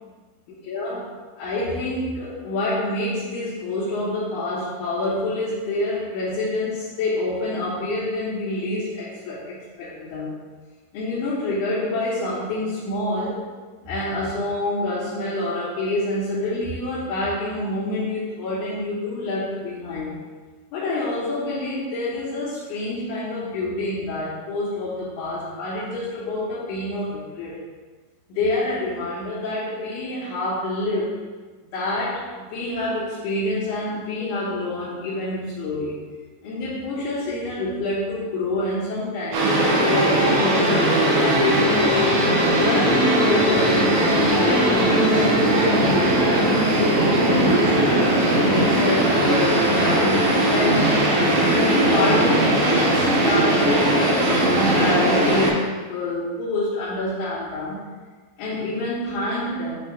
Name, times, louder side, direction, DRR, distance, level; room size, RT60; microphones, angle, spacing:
voice 1, 0.6-1.1 1.4-10.3 10.9-13.4 13.8-20.2 20.7-27.6 28.3-31.2 31.7-36.0 36.4-42.1 42.6-46.4 47.3-51.0 51.4-57.8 58.4-59.8, left 2 dB, 65° left, -14 dB, 4.7 m, -27 dB
sound 1, 39.3-55.5, right 1 dB, 75° right, 5.3 m, -19 dB
11.5 x 4.3 x 3.9 m, 1.4 s
omnidirectional pair, 5.9 m